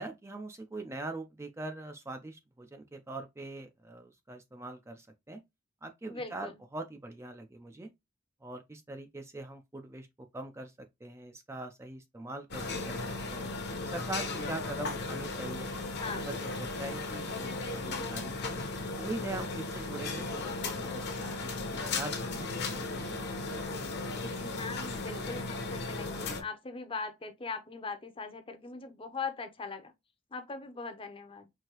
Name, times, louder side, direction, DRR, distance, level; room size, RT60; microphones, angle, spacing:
voice 1, 0.0-5.4 5.8-7.9 8.4-13.5 13.8-15.7 16.3-18.6 19.0-23.3, right 2 dB, 15° right, 0.4 m, -42 dB
voice 2, 6.0-6.6 15.9-16.3 24.2-29.9 30.3-31.5, left 4 dB, 30° left, 0.7 m, -40 dB
sound 1, 12.5-26.4, left 3 dB, 60° left, 1.0 m, -36 dB
4.7 x 2.8 x 2.9 m
head